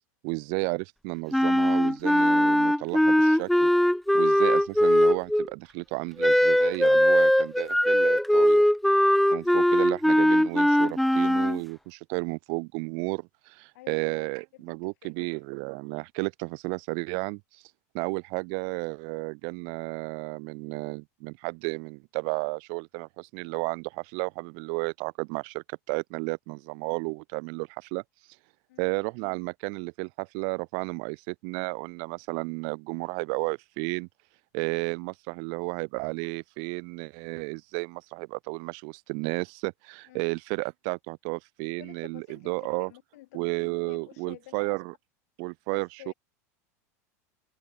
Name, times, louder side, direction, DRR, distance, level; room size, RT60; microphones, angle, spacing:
voice 1, 0.2-3.7 4.1-8.6 9.3-17.4 17.9-28.0 28.8-34.1 34.5-42.9 43.3-44.9 45.4-46.1, right 40 dB or more, 60° right, 0.6 m, -33 dB
Wind instrument woodwind instrument, 1.3-5.5 6.2-11.6, equal, ahead, 0.5 m, -21 dB
voice 2, 13.7-15.3 28.7-28.9 40.1-40.3 41.8-44.8 45.7-46.1, left 18 dB, 75° left, 5.3 m, -50 dB
supercardioid pair, 125°, 8 cm